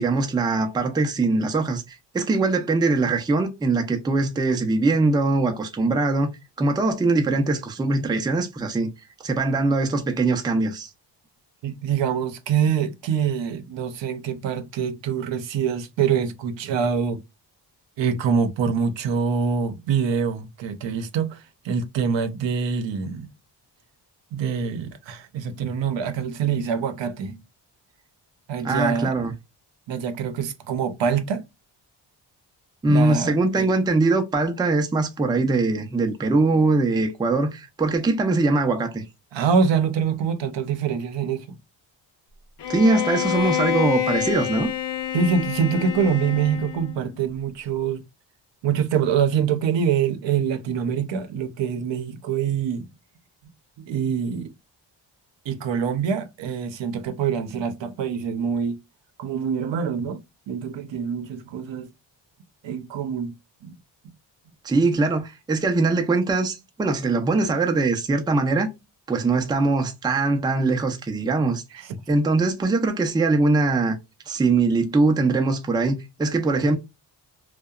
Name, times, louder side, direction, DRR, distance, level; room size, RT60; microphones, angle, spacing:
voice 1, 0.0-8.9 9.2-10.9 28.6-29.3 32.8-39.0 42.7-44.7 64.6-68.7 69.1-71.6 72.1-74.0 74.3-76.8, right 3 dB, 10° right, 0.4 m, -22 dB
voice 2, 11.6-17.2 18.0-23.3 24.3-27.4 28.5-29.1 29.9-31.4 32.9-33.7 39.3-41.6 45.1-48.0 48.6-52.9 53.8-54.5 55.5-58.8 59.2-60.2 60.5-61.9 62.6-63.3 63.6-63.7 71.7-71.9, right 7 dB, 80° right, 0.6 m, -25 dB
Bowed string instrument, 42.6-47.0, left 10 dB, 75° left, 0.7 m, -27 dB
2.7 x 2.1 x 2.2 m
wide cardioid pair, 140°, 44 cm